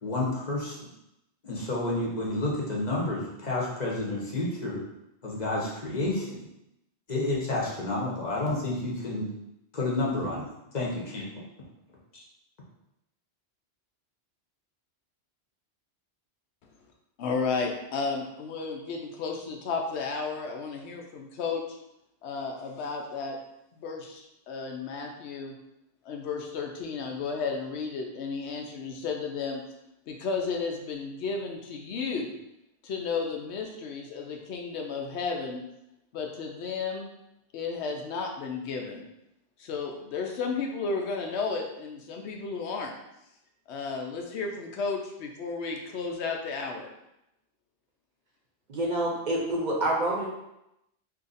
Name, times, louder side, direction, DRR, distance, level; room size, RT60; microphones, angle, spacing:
voice 1, 0.0-0.9 1.4-4.8 5.2-6.5 7.1-9.3 9.7-11.5, left 2 dB, 45° left, -4 dB, 0.9 m, -30 dB
voice 2, 17.2-21.6 22.2-23.4 23.7-25.5 26.0-29.6 30.1-32.4 32.8-35.6 36.1-37.1 37.5-39.0 39.6-42.9 43.7-46.9, left 4 dB, 80° left, 2 dB, 0.9 m, -33 dB
voice 3, 48.7-50.3, right 1 dB, 50° right, -3 dB, 0.7 m, -27 dB
2.8 x 2.5 x 3.9 m, 0.86 s
omnidirectional pair, 1.1 m